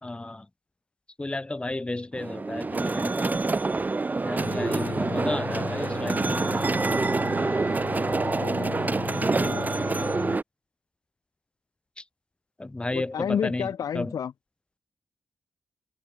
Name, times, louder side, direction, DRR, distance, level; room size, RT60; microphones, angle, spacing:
voice 1, 0.0-0.4 1.2-3.6 4.2-6.5 12.6-13.7 13.9-14.1, left 2 dB, 15° left, 2.9 m, -33 dB
sound 1, 2.1-10.4, right 3 dB, 25° right, 2.9 m, -27 dB
sound 2, 4.4-10.4, left 7 dB, 60° left, 1.6 m, -36 dB
voice 2, 8.1-8.8 9.0-9.7 12.9-14.3, left 8 dB, 80° left, 2.2 m, -31 dB
wide cardioid pair, 130°, 6 cm